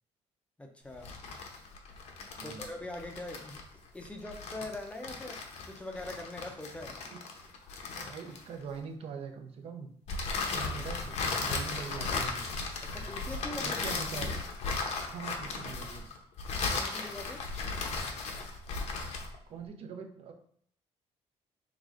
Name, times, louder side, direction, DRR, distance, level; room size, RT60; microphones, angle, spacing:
voice 1, 0.6-1.1 2.4-6.9 12.8-14.0 16.7-17.4, left 1 dB, 10° left, 3 dB, 0.5 m, -43 dB
sound 1, 0.9-8.7 10.1-19.4, left 4 dB, 70° left, 0.7 m, -36 dB
voice 2, 2.3-2.7 7.1-7.5 8.0-9.9 10.4-12.5 13.6-14.3 15.0-16.1 19.5-20.3, right 5 dB, 55° right, 4 dB, 0.6 m, -43 dB
4.8 x 3.2 x 2.5 m, 0.62 s
cardioid pair, 120°, 12 cm